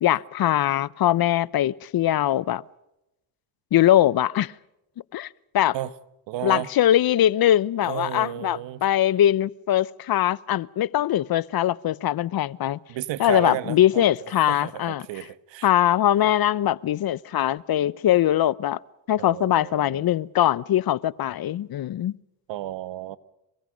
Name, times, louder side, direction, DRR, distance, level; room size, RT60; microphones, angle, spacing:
voice 1, 0.0-2.6 3.7-4.5 5.1-5.3 5.5-5.8 6.4-12.8 13.2-15.1 15.6-18.8 19.1-22.2, left 12 dB, 55° left, 0.9 m, -22 dB
voice 2, 6.3-6.7 7.8-8.8 12.9-14.0 14.5-15.7 19.2-20.1 22.5-23.2, right 13 dB, 75° right, 1.5 m, -32 dB
28.0 x 24.0 x 5.2 m
supercardioid pair, 75°, 44 cm